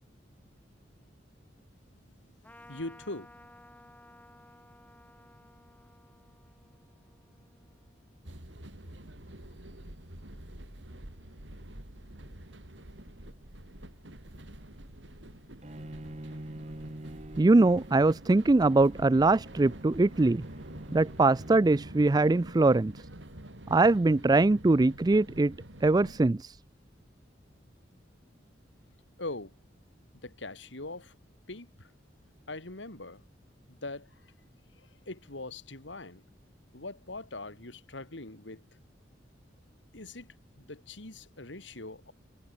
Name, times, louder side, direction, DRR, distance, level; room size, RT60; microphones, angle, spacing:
Trumpet, 2.4-8.3, left 1 dB, 10° left, 7.2 m, -56 dB
voice 1, 2.7-3.4 29.2-29.5 30.1-31.2 31.5-31.9 32.5-33.2 33.7-34.3 34.8-36.2 36.7-38.6 39.9-42.1, left 2 dB, 80° left, 3.1 m, -42 dB
sound 1, 8.2-26.3, right 1 dB, 80° right, 4.1 m, -47 dB
Bowed string instrument, 15.6-22.7, right 1 dB, 40° right, 1.6 m, -46 dB
voice 2, 17.4-20.4 20.9-23.0 23.7-25.5 25.8-26.6, right 2 dB, 20° right, 0.4 m, -22 dB
head